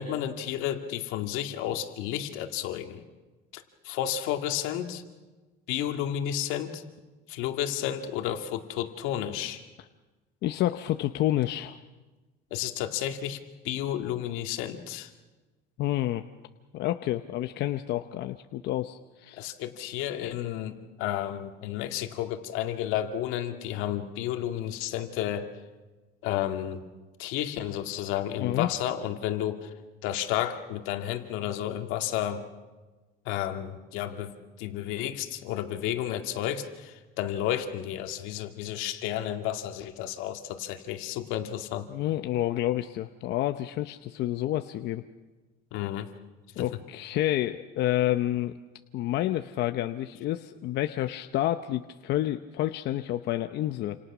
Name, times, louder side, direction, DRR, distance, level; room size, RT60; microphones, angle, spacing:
voice 1, 0.0-3.0 3.5-5.0 5.7-6.8 7.3-9.6 12.5-13.4 13.6-15.1 19.4-25.5 26.2-26.8 27.2-29.7 30.0-32.4 33.3-34.3 34.6-41.9 45.7-46.1 46.6-46.7, left 11 dB, 85° left, 5 dB, 2.1 m, -32 dB
voice 2, 10.4-11.8 15.8-16.2 16.7-19.4 28.4-28.7 41.9-45.0 46.6-48.6 48.9-54.0, left 14 dB, 55° left, 8 dB, 0.8 m, -29 dB
28.5 x 27.0 x 6.1 m, 1.2 s
cardioid pair, 150°, 20 cm